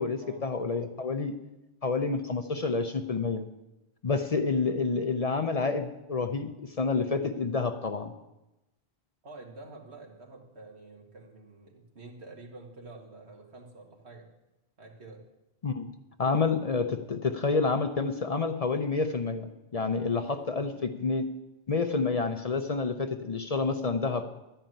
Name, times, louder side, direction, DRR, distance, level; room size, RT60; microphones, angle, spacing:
voice 1, 0.0-1.3 1.8-3.5 4.0-8.1 15.6-15.9 16.2-21.2 21.7-24.2, left 4 dB, 45° left, 8 dB, 0.6 m, -29 dB
voice 2, 9.2-14.3 14.8-15.2 20.1-20.8, right 3 dB, 90° right, 0 dB, 2.1 m, -48 dB
12.0 x 5.5 x 9.0 m, 0.98 s
omnidirectional pair, 1.1 m